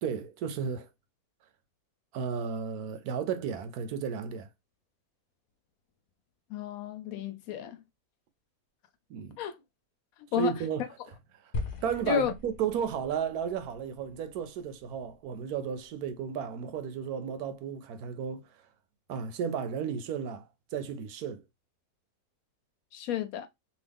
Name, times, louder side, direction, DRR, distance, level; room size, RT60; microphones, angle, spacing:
voice 1, 0.0-0.9 2.1-4.5 9.1-9.4 10.4-10.9 11.8-18.5 19.1-20.4 20.7-21.4, right 7 dB, 85° right, 1.1 m, -33 dB
voice 2, 6.5-7.8 9.4-9.5 10.3-10.5 12.1-12.3 22.9-23.5, left 9 dB, 75° left, 1.0 m, -31 dB
sound 1, 11.5-15.9, left 3 dB, 45° left, 0.7 m, -41 dB
2.9 x 2.6 x 3.4 m
omnidirectional pair, 1.6 m